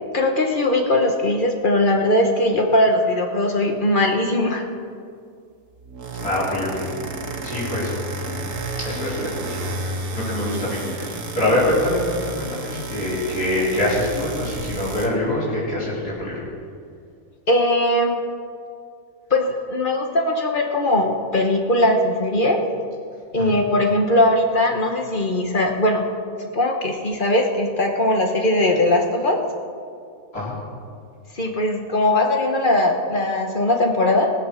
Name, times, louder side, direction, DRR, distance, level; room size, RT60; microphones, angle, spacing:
voice 1, 0.1-4.7 17.5-18.2 19.3-22.6 23.3-26.1 26.4-29.4 31.3-34.3, left 1 dB, 35° left, 3 dB, 1.2 m, -20 dB
sound 1, 5.8-15.1, right 2 dB, 80° right, 1.8 m, -31 dB
voice 2, 6.2-6.9 7.4-7.9 8.8-16.4 23.4-23.6 30.3-30.5, left 1 dB, 85° left, -7 dB, 4.7 m, -25 dB
19.0 x 7.5 x 6.4 m, 2.3 s
omnidirectional pair, 1.6 m